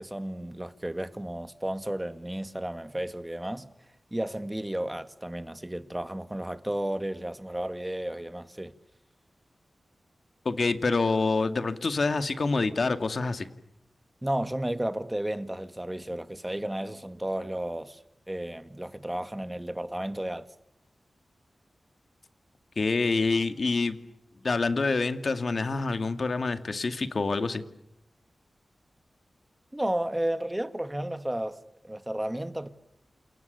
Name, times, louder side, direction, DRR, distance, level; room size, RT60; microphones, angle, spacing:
voice 1, 0.0-3.7 4.1-8.7 14.2-18.0 18.3-20.5 29.7-32.7, right 1 dB, 10° right, 2.0 m, -33 dB
voice 2, 10.4-13.5 22.8-24.0 24.4-27.6, left 3 dB, 60° left, 2.3 m, -26 dB
29.0 x 29.0 x 7.0 m
wide cardioid pair, 70°, 0 cm